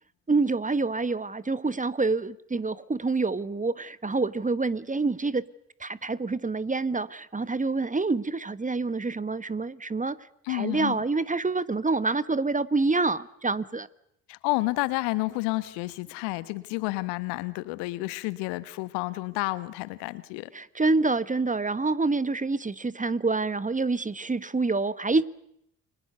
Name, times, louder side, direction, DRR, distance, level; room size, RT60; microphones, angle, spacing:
voice 1, 0.3-5.4 5.8-10.2 10.5-13.9 20.5-25.3, right 3 dB, 20° right, 1.3 m, -27 dB
voice 2, 10.4-11.0 14.3-20.5, left 21 dB, 70° left, 1.3 m, -30 dB
29.0 x 24.0 x 6.9 m
figure-of-eight pair, 45°, 43 cm